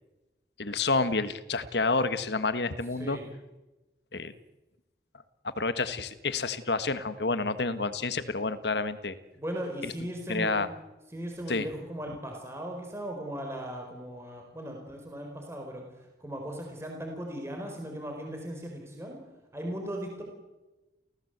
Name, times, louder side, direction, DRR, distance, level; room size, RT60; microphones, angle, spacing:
voice 1, 0.6-3.2 4.1-4.3 5.4-9.1 9.8-9.9 10.3-10.7 11.5-11.7, left 3 dB, 70° left, 12 dB, 1.5 m, -29 dB
voice 2, 9.4-10.6 11.1-15.8 16.2-19.2 19.5-20.2, equal, 15° right, 1 dB, 4.5 m, -37 dB
29.5 x 16.5 x 8.1 m, 1.1 s
head